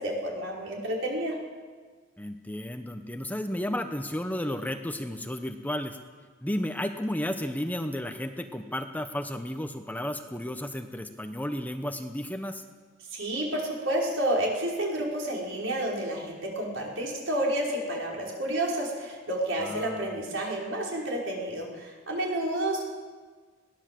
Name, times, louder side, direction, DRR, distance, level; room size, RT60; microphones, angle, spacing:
voice 1, 0.0-1.4 13.1-22.8, right 1 dB, 70° right, -2 dB, 5.4 m, -30 dB
voice 2, 2.2-6.0 6.4-12.6 19.6-20.2, left 1 dB, 10° left, 7 dB, 0.9 m, -33 dB
21.5 x 17.0 x 7.7 m, 1.5 s
head